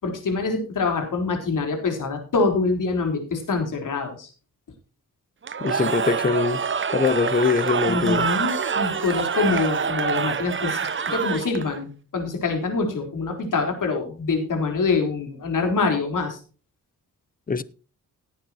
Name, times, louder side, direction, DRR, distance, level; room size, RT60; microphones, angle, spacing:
voice 1, 0.0-4.3 7.9-16.4, left 4 dB, 65° left, 4.3 m, -25 dB
Cheering / Crowd, 5.4-11.8, right 6 dB, 35° right, 0.9 m, -26 dB
voice 2, 5.6-6.6 6.9-8.3 17.5-17.6, left 5 dB, 25° left, 0.8 m, -22 dB
18.0 x 9.2 x 3.0 m
cardioid pair, 100°, 34 cm